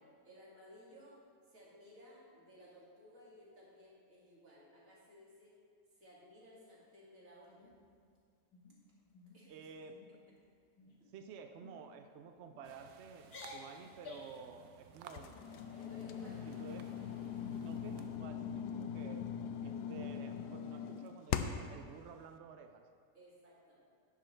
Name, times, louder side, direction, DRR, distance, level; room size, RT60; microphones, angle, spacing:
voice 1, 0.2-1.2 1.5-5.5 5.9-7.7 9.3-9.7 15.0-15.1 15.8-16.4 23.1-23.8, equal, 55° right, -6 dB, 2.9 m, -58 dB
sound 1, 7.5-8.1 8.5-8.8 9.1-9.4 9.8-10.1 10.7-11.1 11.6-11.8 12.5-12.9 13.2-14.4, left 3 dB, 65° left, 1.8 m, -53 dB
voice 2, 9.5-10.0 11.1-15.3 16.4-16.9 17.6-19.2 19.6-22.8, right 6 dB, 70° right, 6 dB, 0.6 m, -52 dB
sound 2, 12.6-18.2, right 7 dB, 90° right, 1.3 m, -58 dB
sound 3, 15.1-21.8, left 8 dB, 85° left, 1.2 m, -41 dB
11.0 x 10.0 x 3.3 m, 2.1 s
omnidirectional pair, 1.7 m